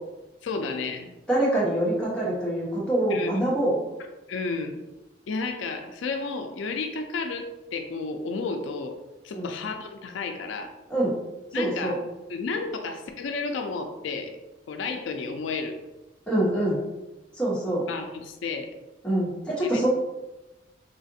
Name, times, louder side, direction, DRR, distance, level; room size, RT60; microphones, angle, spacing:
voice 1, 0.4-1.1 3.1-3.3 4.3-4.8 5.3-9.0 9.2-10.7 11.5-11.9 12.3-14.4 14.7-15.8 17.9-18.7 19.6-19.8, left 4 dB, 85° left, 5 dB, 0.4 m, -32 dB
voice 2, 1.3-3.8 9.3-9.5 10.9-11.2 11.5-12.0 16.3-16.8 17.4-17.9 19.0-19.9, right 1 dB, 5° left, -7 dB, 1.0 m, -25 dB
3.8 x 2.4 x 2.6 m, 1.0 s
head